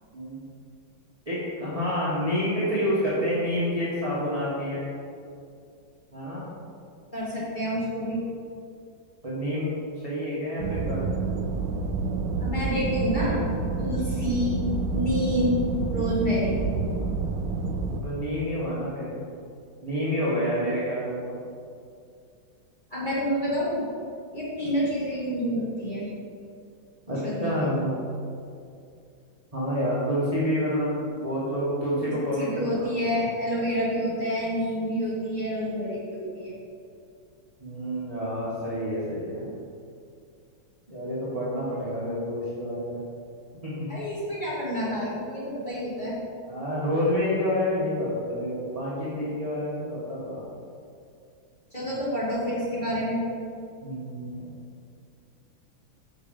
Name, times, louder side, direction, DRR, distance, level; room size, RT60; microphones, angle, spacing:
voice 1, 1.3-4.9 6.1-6.4 9.2-11.2 18.0-19.2 19.8-21.3 27.1-28.0 29.5-33.2 37.6-39.4 40.9-43.0 43.6-43.9 46.5-50.4 53.8-54.5, equal, 20° right, -9 dB, 1.1 m, -28 dB
voice 2, 7.1-8.2 12.4-13.5 13.8-14.6 14.9-16.6 22.9-23.8 24.3-26.1 27.1-27.8 32.0-36.6 43.9-46.1 51.7-53.2, equal, 25° left, -9 dB, 2.1 m, -28 dB
sound 1, 10.6-18.0, right 4 dB, 75° right, 1.2 m, -28 dB
6.3 x 5.3 x 5.1 m, 2.4 s
omnidirectional pair, 2.2 m